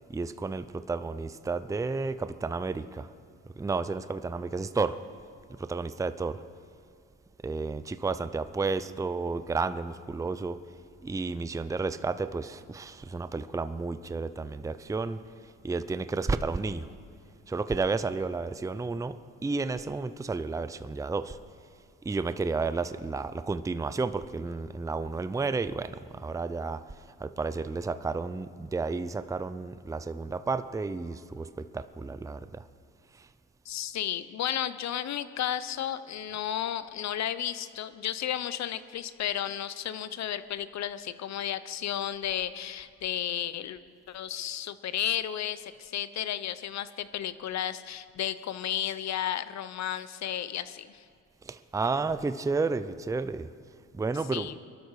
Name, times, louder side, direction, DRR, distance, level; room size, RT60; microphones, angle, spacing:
voice 1, 0.1-3.1 3.6-5.0 5.6-6.4 7.4-10.6 11.0-15.2 15.6-16.9 17.5-19.2 19.4-21.4 22.0-26.8 27.2-32.6 51.5-53.5 53.9-54.5, right 4 dB, 10° right, 0.5 m, -31 dB
voice 2, 33.7-43.8 44.1-51.0 54.3-54.6, left 10 dB, 65° left, 0.8 m, -33 dB
22.5 x 12.0 x 4.8 m
cardioid pair, 90°, 30 cm